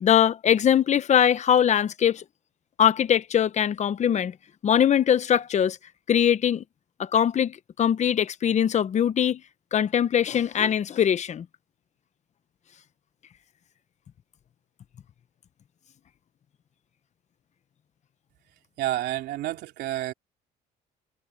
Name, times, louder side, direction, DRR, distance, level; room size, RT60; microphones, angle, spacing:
voice 1, 0.0-2.2 2.8-4.3 4.6-5.8 6.1-6.6 7.0-9.4 9.7-11.4, left 9 dB, 45° left, 1.0 m, -22 dB
voice 2, 18.8-20.1, right 15 dB, 80° right, 3.6 m, -29 dB
cardioid pair, 110°, 17 cm